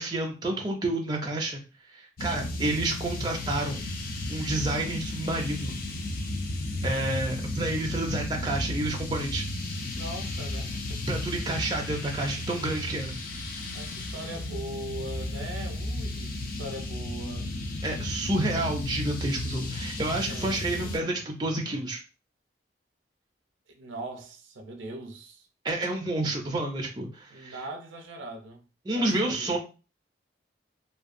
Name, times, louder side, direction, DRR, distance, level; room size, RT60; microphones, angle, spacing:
voice 1, 0.0-1.6 1.9-3.8 4.3-5.8 6.8-9.5 11.1-13.2 17.8-22.0 25.6-27.6 28.9-29.6, right 2 dB, 20° right, 0.4 m, -29 dB
sound 1, 2.2-21.0, left 2 dB, 45° left, 0.4 m, -34 dB
voice 2, 10.0-11.0 13.7-17.5 20.2-21.2 23.7-25.5 27.3-28.6 28.9-29.6, right 1 dB, 85° right, 0.5 m, -41 dB
2.6 x 2.2 x 2.5 m
head